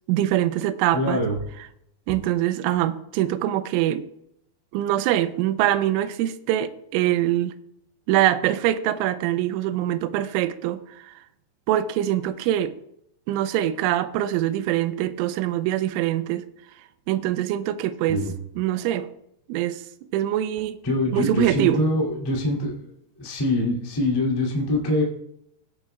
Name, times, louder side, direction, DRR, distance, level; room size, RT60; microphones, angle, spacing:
voice 1, 0.1-1.2 2.1-4.0 4.7-7.5 8.1-11.1 11.7-12.7 13.3-16.4 17.1-18.2 18.6-19.1 19.5-19.8 20.1-20.8 21.1-21.8, right 13 dB, 90° right, 13 dB, 3.1 m, -23 dB
voice 2, 0.9-1.4 18.1-18.3 20.8-22.8 23.2-25.0, left 1 dB, 20° left, -4 dB, 0.6 m, -24 dB
17.0 x 8.2 x 2.3 m, 0.77 s
omnidirectional pair, 5.5 m